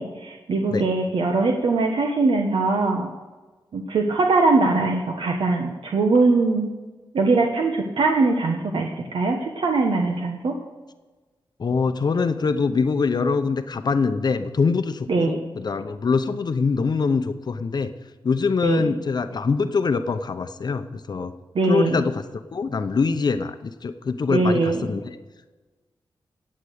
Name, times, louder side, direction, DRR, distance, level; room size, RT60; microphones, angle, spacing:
voice 1, 0.0-3.1 3.7-6.7 7.1-10.5 15.1-15.4 18.6-18.9 21.5-22.0 24.3-24.9, right 3 dB, 75° right, 2 dB, 1.3 m, -21 dB
voice 2, 11.6-17.9 18.2-21.3 21.7-22.2 22.5-25.1, left 4 dB, 55° left, 8 dB, 0.7 m, -24 dB
16.5 x 8.2 x 6.5 m, 1.3 s
wide cardioid pair, 105°, 9 cm